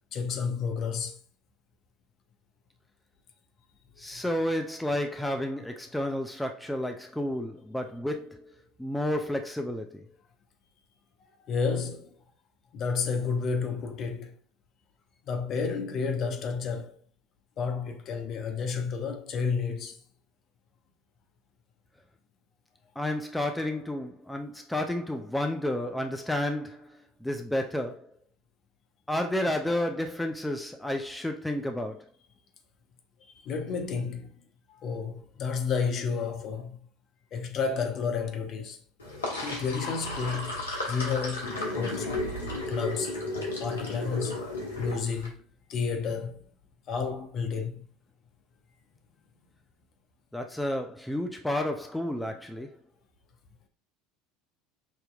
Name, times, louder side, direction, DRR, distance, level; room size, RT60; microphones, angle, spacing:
voice 1, 0.1-1.2 4.1-4.2 11.4-12.2 12.7-14.4 15.3-17.0 17.6-20.0 33.4-34.4 34.7-36.8 37.3-38.8 39.4-42.2 42.7-43.2 43.6-44.4 44.8-45.4 45.7-46.4 46.9-47.8, left 5 dB, 45° left, 0.7 m, -31 dB
voice 2, 4.0-10.1 23.0-28.2 29.1-32.1 50.3-52.8, left 1 dB, 5° left, 0.5 m, -31 dB
Sink (filling or washing), 39.0-45.3, left 2 dB, 85° left, 1.0 m, -34 dB
5.0 x 2.9 x 2.3 m
figure-of-eight pair, 70°, 0 cm